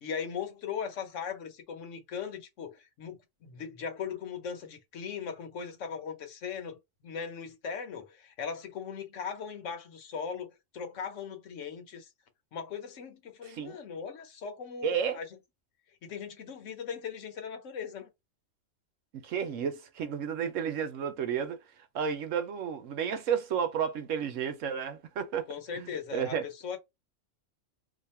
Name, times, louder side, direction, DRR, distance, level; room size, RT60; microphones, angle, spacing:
voice 1, 0.0-12.1 12.5-15.3 16.0-18.1 25.5-26.8, left 6 dB, 70° left, 1.2 m, -39 dB
voice 2, 13.4-13.8 14.8-15.2 19.1-21.6 21.9-25.5 25.8-26.4, right 7 dB, 75° right, 1.1 m, -32 dB
2.8 x 2.3 x 4.1 m
omnidirectional pair, 1.3 m